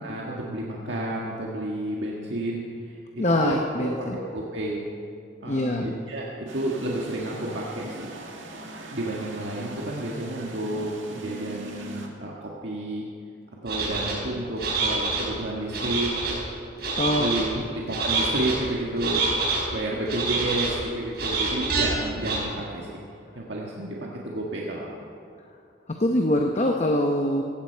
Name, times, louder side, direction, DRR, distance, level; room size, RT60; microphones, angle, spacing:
voice 1, 0.0-4.9 5.4-6.2 6.5-8.1 8.9-13.0 13.6-16.1 17.2-19.3 19.7-23.0 23.3-24.9, right 1 dB, 70° right, -3 dB, 1.6 m, -31 dB
voice 2, 3.2-4.2 5.5-5.9 17.0-17.3 26.0-27.4, left 1 dB, 35° left, 3 dB, 0.8 m, -23 dB
sound 1, 6.5-12.1, right 2 dB, 90° right, 1.9 m, -40 dB
sound 2, 13.7-14.1 14.6-15.2 15.7-16.4 16.8-17.4 17.9-18.5 19.0-19.6 20.1-20.7 21.2-21.8 22.2-22.4, right 3 dB, 55° right, 4.6 m, -26 dB
17.0 x 15.5 x 4.5 m, 2.4 s
head